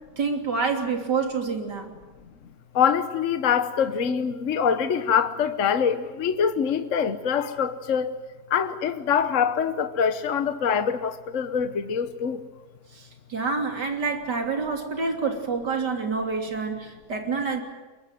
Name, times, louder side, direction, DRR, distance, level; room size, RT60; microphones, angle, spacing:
voice 1, 0.2-1.9 12.9-17.6, right 4 dB, 90° right, 3.8 m, -27 dB
voice 2, 2.7-8.1 8.5-12.4, left 7 dB, 50° left, 1.4 m, -24 dB
23.0 x 23.0 x 9.2 m
omnidirectional pair, 1.8 m